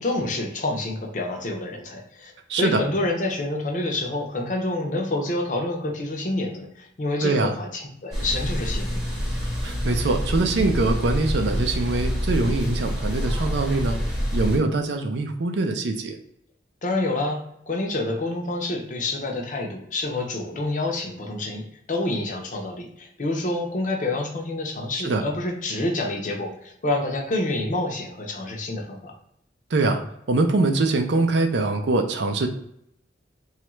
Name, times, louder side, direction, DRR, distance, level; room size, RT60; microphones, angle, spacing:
voice 1, 0.0-2.3 2.6-9.0 16.8-21.6 21.9-29.1, left 2 dB, 45° left, 1 dB, 0.6 m, -28 dB
voice 2, 2.5-2.8 7.2-7.5 9.6-14.0 14.3-16.2 25.0-25.2 29.7-30.0 30.3-32.5, right 3 dB, 70° right, 5 dB, 0.5 m, -23 dB
sound 1, 8.1-14.6, equal, ahead, 0.8 m, -27 dB
3.2 x 2.4 x 3.0 m, 0.75 s
head